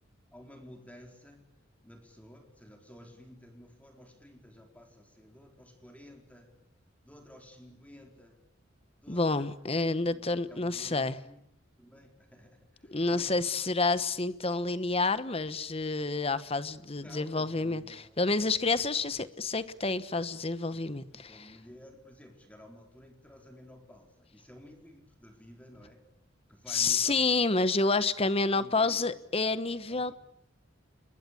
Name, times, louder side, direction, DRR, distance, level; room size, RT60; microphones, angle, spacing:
voice 1, 0.3-1.5 1.8-6.5 7.0-8.4 9.0-9.5 9.8-11.4 11.8-13.3 17.0-18.6 18.9-19.0 21.1-26.0 26.5-27.3 28.5-29.2 29.9-30.1, equal, 5° left, 4.6 m, -53 dB
voice 2, 9.1-11.1 12.9-21.4 26.7-30.1, left 3 dB, 30° left, 1.1 m, -29 dB
30.0 x 22.0 x 8.6 m
head